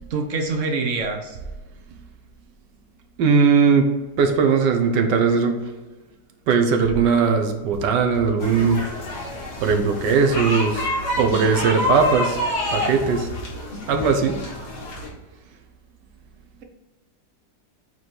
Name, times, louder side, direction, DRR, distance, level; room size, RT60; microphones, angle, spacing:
voice 1, 0.1-1.4, right 3 dB, 50° right, 4 dB, 1.1 m, -25 dB
voice 2, 3.2-3.9 4.2-5.6 6.5-8.8 9.1-9.3 9.6-10.9 11.2-12.4 12.7-13.3 13.9-14.3, right 5 dB, 80° right, 5 dB, 1.4 m, -19 dB
sound 1, 7.7-8.7 9.0-9.1 9.5-10.8 11.1-14.5, left 2 dB, 40° left, 1.9 m, -39 dB
sound 2, 8.4-15.1, left 1 dB, 65° left, 2.2 m, -28 dB
8.3 x 3.1 x 4.5 m, 1.2 s
omnidirectional pair, 1.9 m